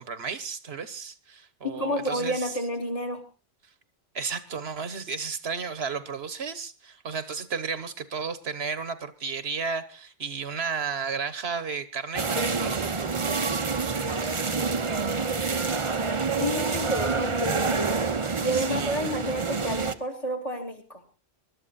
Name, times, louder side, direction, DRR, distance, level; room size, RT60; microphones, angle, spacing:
voice 1, 0.0-2.5 4.1-14.3 18.5-19.1, right 5 dB, 75° right, 13 dB, 1.4 m, -33 dB
voice 2, 1.6-3.2 16.4-17.8 18.4-21.0, equal, 30° left, 5 dB, 2.9 m, -30 dB
sound 1, 12.1-19.9, right 4 dB, 30° right, 0.8 m, -27 dB
20.5 x 12.0 x 4.1 m, 0.34 s
omnidirectional pair, 1.1 m